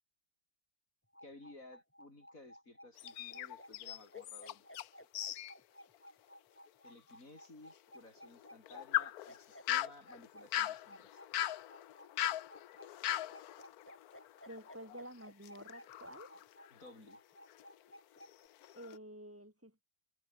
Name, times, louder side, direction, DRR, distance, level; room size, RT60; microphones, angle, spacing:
sound 1, 1.1-18.5, equal, 10° left, 5.5 m, -56 dB
voice 1, 1.2-4.7 6.8-11.2 16.7-17.2, left 2 dB, 60° left, 7.2 m, -57 dB
sound 2, 3.0-4.9 5.1-5.5 5.9-6.0 6.7-6.8 8.3-15.0 15.4-16.9 17.5-17.7 18.2-19.0, left 13 dB, 80° left, 1.2 m, -40 dB
voice 2, 14.5-16.3 18.7-19.8, equal, 10° right, 4.7 m, -50 dB
omnidirectional pair, 1.6 m